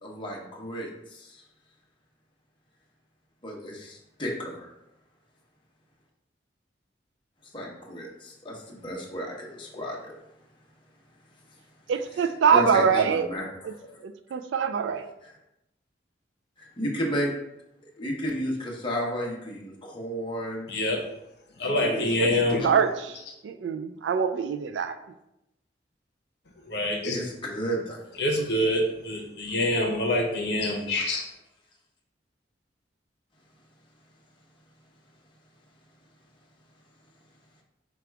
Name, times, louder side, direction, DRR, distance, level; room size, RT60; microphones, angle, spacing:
voice 1, 0.0-1.4 3.4-4.7 7.5-10.1 12.1-14.0 15.2-15.3 16.6-17.3 18.0-20.7 21.6-22.4 27.1-28.0 30.9-31.2, equal, 25° left, -2 dB, 0.9 m, -33 dB
voice 2, 11.9-13.3 14.0-15.1 22.2-22.3 22.6-23.2 23.4-25.0, right 6 dB, 85° right, 9 dB, 0.3 m, -24 dB
voice 3, 20.7-21.0 21.6-22.7 26.7-27.2 28.2-31.2, left 1 dB, 65° left, 0 dB, 0.8 m, -26 dB
5.1 x 2.3 x 4.5 m, 0.86 s
head